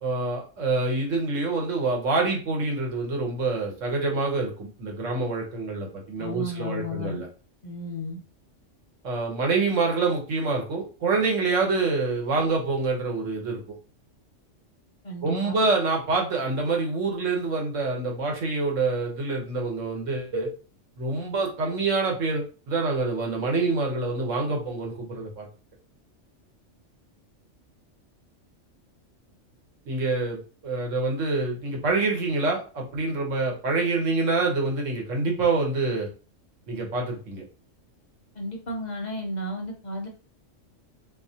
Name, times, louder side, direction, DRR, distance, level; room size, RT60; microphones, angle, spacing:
voice 1, 0.0-7.3 9.0-13.6 15.2-20.5 21.0-25.5 29.9-36.1 36.7-37.4, right 3 dB, 75° right, 1 dB, 1.3 m, -26 dB
voice 2, 6.2-7.2 7.6-8.2 15.0-15.5 38.3-40.1, left 1 dB, 45° left, 1 dB, 0.6 m, -33 dB
3.6 x 2.8 x 2.7 m, 0.36 s
omnidirectional pair, 1.3 m